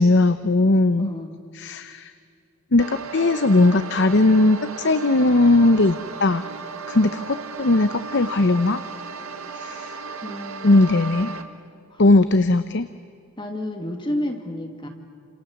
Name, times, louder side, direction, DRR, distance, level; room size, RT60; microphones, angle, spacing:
voice 1, 0.0-1.1 1.5-2.1 2.7-6.4 6.9-8.8 9.6-9.9 10.6-11.3 12.0-12.9, left 2 dB, 55° left, 12 dB, 0.8 m, -18 dB
voice 2, 1.0-1.4 10.2-11.3 11.9-12.0 13.4-14.9, left 1 dB, 25° left, 4 dB, 2.3 m, -31 dB
sound 1, 2.8-11.4, right 4 dB, 85° right, 1.9 m, -35 dB
29.0 x 28.0 x 7.2 m, 2.3 s
head